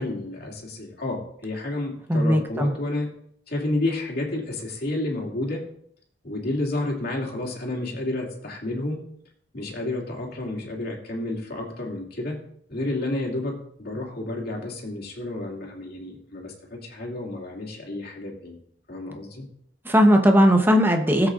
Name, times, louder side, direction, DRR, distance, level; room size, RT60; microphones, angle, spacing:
voice 1, 0.0-3.1 3.5-5.6 6.2-9.0 9.5-12.4 12.7-18.6 18.9-19.5, left 2 dB, 60° left, -2 dB, 2.5 m, -30 dB
voice 2, 2.1-2.7 19.8-21.3, equal, 10° right, 4 dB, 1.0 m, -18 dB
16.0 x 7.9 x 2.5 m, 0.67 s
head